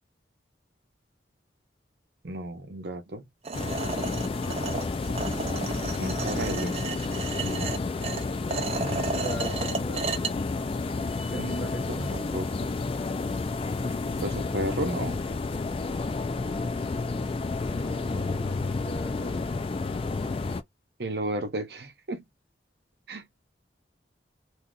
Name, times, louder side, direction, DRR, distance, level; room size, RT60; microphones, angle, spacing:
voice 1, 2.2-3.3 6.0-6.8 7.4-7.7 11.3-12.7 14.2-15.2 21.0-22.2 23.1-23.3, right 1 dB, 60° right, 0.8 m, -33 dB
sound 1, 3.4-10.3, right 4 dB, 35° right, 0.5 m, -33 dB
sound 2, 3.5-20.6, left 3 dB, 30° left, 0.3 m, -30 dB
voice 2, 8.9-10.1 11.3-12.0 17.7-19.5, equal, 50° left, 1.0 m, -39 dB
2.7 x 2.4 x 3.7 m
head